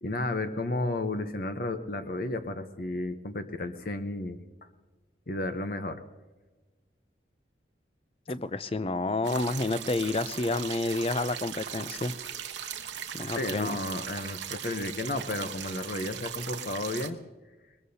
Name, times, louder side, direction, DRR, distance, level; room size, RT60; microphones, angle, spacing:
voice 1, 0.0-4.4 5.3-6.0 13.4-17.2, left 2 dB, 50° left, 8 dB, 0.8 m, -32 dB
voice 2, 8.3-12.1 13.1-13.7, left 2 dB, 30° left, 14 dB, 0.5 m, -29 dB
small stream, 9.2-17.1, right 9 dB, 85° right, 1.0 m, -39 dB
22.0 x 21.0 x 2.8 m, 1.2 s
head